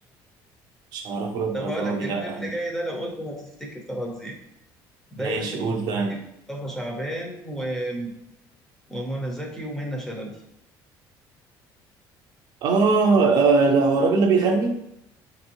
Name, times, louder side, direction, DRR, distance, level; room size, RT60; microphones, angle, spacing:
voice 1, 0.9-2.5 5.2-6.2 12.6-14.8, right 4 dB, 55° right, 3 dB, 0.6 m, -21 dB
voice 2, 1.5-4.4 5.1-5.8 6.1-6.2 6.5-8.1 8.9-10.4, equal, 5° left, -1 dB, 0.7 m, -32 dB
6.1 x 3.0 x 2.6 m, 0.79 s
cardioid pair, 165°, 8 cm